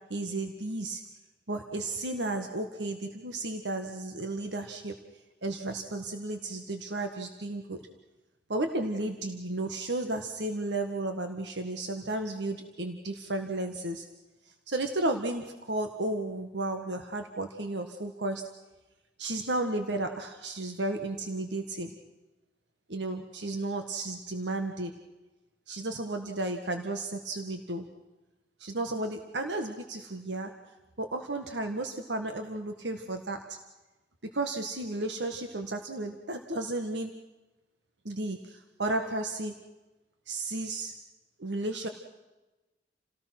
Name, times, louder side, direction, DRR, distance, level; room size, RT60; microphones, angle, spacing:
voice 1, 0.1-1.0 1.5-4.9 5.4-7.8 8.5-14.1 14.7-18.4 19.2-21.9 22.9-24.9 25.7-27.8 28.6-30.5 31.0-33.6 34.3-37.1 38.0-39.5 40.3-40.9 41.4-41.9, right 2 dB, 85° right, 6 dB, 1.7 m, -33 dB
29.0 x 18.5 x 6.0 m, 1.1 s
head